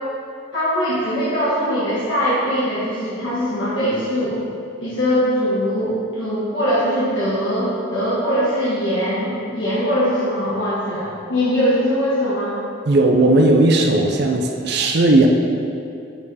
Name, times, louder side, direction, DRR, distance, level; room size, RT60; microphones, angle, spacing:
voice 1, 0.5-4.4 4.8-12.5, equal, 65° left, -11 dB, 1.6 m, -21 dB
voice 2, 12.9-15.3, right 2 dB, 55° right, 2 dB, 0.5 m, -16 dB
6.8 x 5.0 x 4.1 m, 2.6 s
head